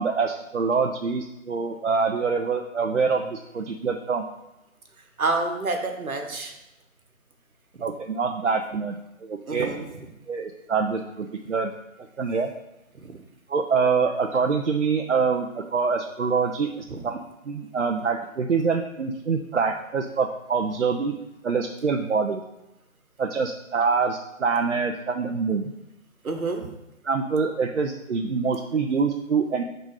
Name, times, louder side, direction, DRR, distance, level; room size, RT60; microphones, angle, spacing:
voice 1, 0.0-4.3 7.8-9.0 9.2-9.7 10.3-11.7 12.2-12.5 13.5-16.7 17.0-17.2 17.5-21.1 21.4-22.4 23.2-25.7 27.0-29.6, right 5 dB, 60° right, 3 dB, 0.6 m, -25 dB
voice 2, 5.2-6.5 9.5-9.9 12.9-13.2 16.9-17.0 26.2-26.7, right 3 dB, 90° right, 4 dB, 1.2 m, -28 dB
4.8 x 3.9 x 5.5 m, 0.93 s
figure-of-eight pair, 165°, 41 cm